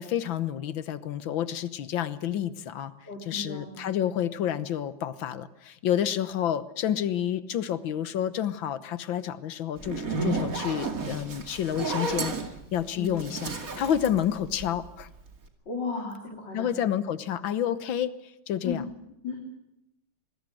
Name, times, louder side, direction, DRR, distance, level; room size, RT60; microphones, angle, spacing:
voice 1, 0.0-2.9 3.3-12.4 12.7-15.1 16.5-18.1 18.5-18.8, left 10 dB, 85° left, 14 dB, 1.8 m, -29 dB
voice 2, 3.1-3.9 6.0-6.1 12.9-13.1 15.7-16.7 18.6-18.9 19.2-19.4, left 4 dB, 65° left, 0 dB, 4.5 m, -35 dB
Zipper (clothing), 9.8-15.0, right 3 dB, 45° right, 2.8 m, -32 dB
26.5 x 20.5 x 7.8 m, 0.85 s
omnidirectional pair, 2.1 m